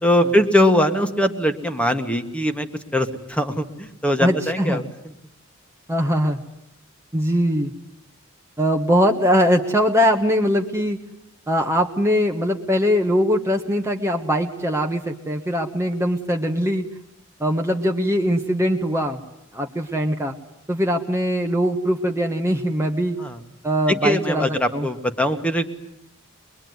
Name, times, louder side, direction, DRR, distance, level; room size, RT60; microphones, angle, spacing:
voice 1, 0.0-4.9 23.2-23.4 24.0-25.7, left 1 dB, 5° left, 6 dB, 1.8 m, -21 dB
voice 2, 4.2-4.8 5.9-6.4 7.1-7.7 8.6-11.0 11.5-16.8 17.4-19.2 19.5-20.3 20.7-23.2 23.6-24.9, equal, 15° right, 2 dB, 1.4 m, -21 dB
24.5 x 22.5 x 9.6 m, 0.82 s
head